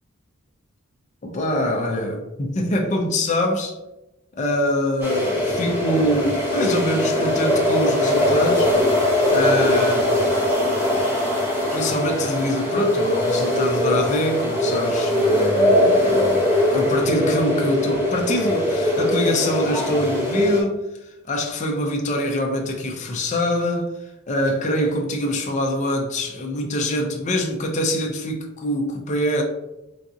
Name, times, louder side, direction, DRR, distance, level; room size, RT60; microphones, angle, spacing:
voice 1, 1.2-3.8 4.3-8.7 9.3-10.3 11.2-16.4 16.7-29.4, equal, 35° left, 0.4 m, -24 dB
sound 1, 5.0-20.6, left 1 dB, 10° right, 0.6 m, -21 dB
3.9 x 2.4 x 2.6 m
head